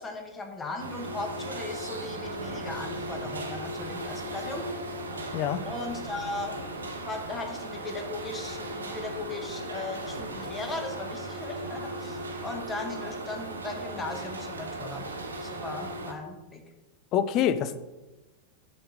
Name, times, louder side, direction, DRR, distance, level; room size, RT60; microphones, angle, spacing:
voice 1, 0.0-4.7 5.6-6.6 7.0-15.1 15.4-16.6, left 2 dB, 15° left, 3 dB, 1.2 m, -37 dB
sound 1, 0.8-16.1, right 1 dB, 75° right, 0.9 m, -37 dB
voice 2, 17.1-17.8, left 9 dB, 40° left, 12 dB, 0.5 m, -25 dB
6.6 x 4.1 x 5.1 m, 1.1 s
figure-of-eight pair, 90°, 0 cm